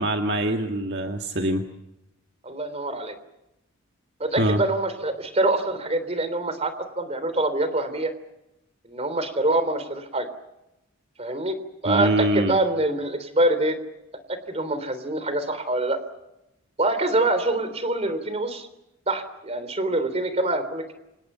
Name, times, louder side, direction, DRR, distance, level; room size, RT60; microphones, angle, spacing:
voice 1, 0.0-1.6 4.4-4.6 11.9-12.6, right 1 dB, 50° right, 4 dB, 1.9 m, -24 dB
voice 2, 2.4-3.2 4.2-8.1 8.9-10.3 11.2-11.6 11.8-13.8 14.3-16.0 16.8-18.7 19.1-20.9, right 2 dB, 30° right, 11 dB, 3.5 m, -25 dB
29.5 x 27.0 x 5.7 m, 0.91 s
head